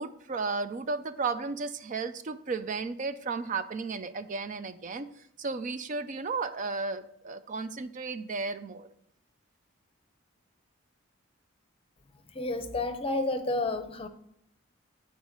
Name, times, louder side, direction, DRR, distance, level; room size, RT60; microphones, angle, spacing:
voice 1, 0.0-5.1 5.4-8.9, right 4 dB, 40° right, 0.4 m, -34 dB
voice 2, 12.3-14.1, left 2 dB, 30° left, 0.7 m, -30 dB
7.9 x 4.6 x 6.5 m
head